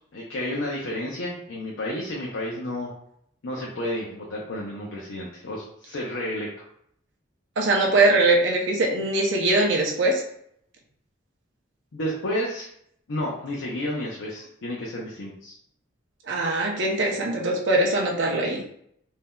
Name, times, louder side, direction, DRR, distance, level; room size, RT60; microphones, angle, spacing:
voice 1, 0.1-2.9 3.4-6.7 11.9-12.7 13.1-15.6, left 1 dB, 75° left, -3 dB, 0.6 m, -31 dB
voice 2, 7.6-10.2 16.3-18.7, right 2 dB, 65° right, 0 dB, 0.5 m, -22 dB
3.5 x 2.7 x 2.2 m, 0.70 s
head